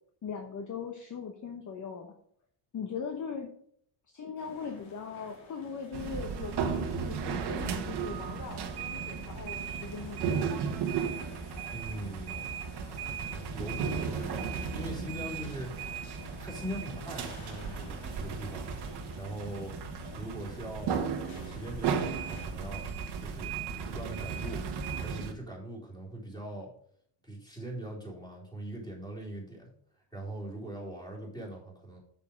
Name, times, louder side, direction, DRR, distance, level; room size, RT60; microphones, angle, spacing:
voice 1, 0.2-2.1 2.7-3.5 4.1-10.5, left 6 dB, 35° left, 3 dB, 1.1 m, -40 dB
sound 1, 4.4-22.5, left 3 dB, 70° left, 4.0 m, -52 dB
sound 2, 5.9-25.3, right 6 dB, 55° right, 1.3 m, -35 dB
voice 2, 11.7-12.5 13.5-15.9 16.4-19.8 20.2-22.8 23.2-23.5 23.9-24.7 25.0-26.7 27.2-29.7 30.1-32.0, right 1 dB, 10° left, -3 dB, 3.9 m, -41 dB
7.1 x 6.7 x 5.1 m, 0.64 s
cardioid pair, 115°, 49 cm